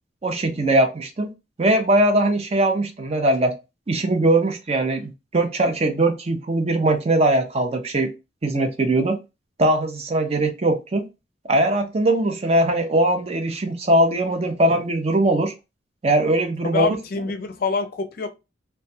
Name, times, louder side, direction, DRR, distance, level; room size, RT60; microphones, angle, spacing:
voice 1, 0.2-1.3 1.6-3.6 3.9-8.1 8.4-9.2 9.6-11.0 11.5-15.5 16.0-17.0, right 1 dB, 35° right, 0.5 m, -20 dB
voice 2, 16.7-18.3, left 4 dB, 55° left, 0.4 m, -26 dB
2.2 x 2.2 x 2.6 m
head